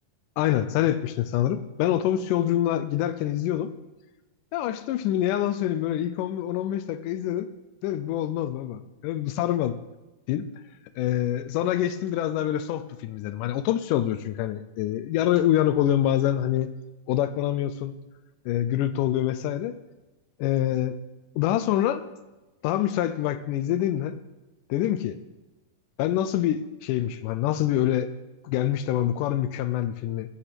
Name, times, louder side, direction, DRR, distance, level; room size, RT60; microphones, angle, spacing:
voice 1, 0.4-3.7 4.5-7.5 7.8-9.7 10.3-10.5 11.0-16.7 17.1-18.0 18.5-19.8 20.4-21.0 21.4-22.0 22.6-24.2 24.7-25.2 26.0-28.1 28.4-30.3, left 12 dB, 85° left, 12 dB, 1.8 m, -25 dB
13.5 x 8.3 x 6.0 m, 1.1 s
omnidirectional pair, 4.3 m